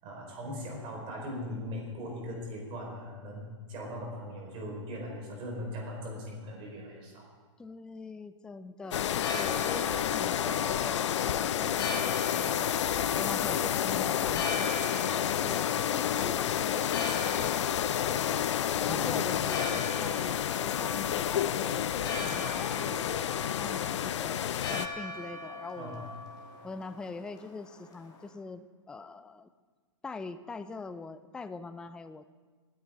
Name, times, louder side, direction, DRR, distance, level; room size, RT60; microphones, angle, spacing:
voice 1, 0.0-7.3 18.9-19.1 25.8-26.0, equal, 35° right, -1 dB, 4.7 m, -39 dB
voice 2, 7.6-12.8 13.1-14.8 15.3-18.5 18.8-26.2 26.6-29.5 30.0-32.3, left 3 dB, 5° left, 12 dB, 0.3 m, -43 dB
Church bell, 8.8-28.3, left 2 dB, 25° left, 2.6 m, -41 dB
sound 1, 8.9-24.9, left 10 dB, 65° left, 0.5 m, -30 dB
20.0 x 9.7 x 3.7 m, 1.5 s
hypercardioid pair, 115°, 16 cm